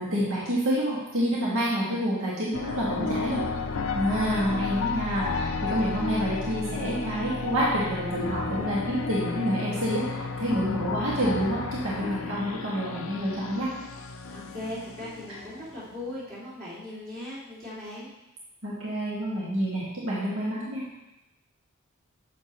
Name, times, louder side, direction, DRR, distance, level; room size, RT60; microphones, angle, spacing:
voice 1, 0.0-3.6 3.9-13.7 18.6-20.8, equal, 65° right, -7 dB, 2.0 m, -28 dB
sound 1, 2.5-15.9, left 4 dB, 70° left, 0.7 m, -33 dB
voice 2, 14.3-18.1, left 1 dB, 40° right, -10 dB, 2.9 m, -39 dB
10.5 x 7.6 x 3.1 m, 0.97 s
head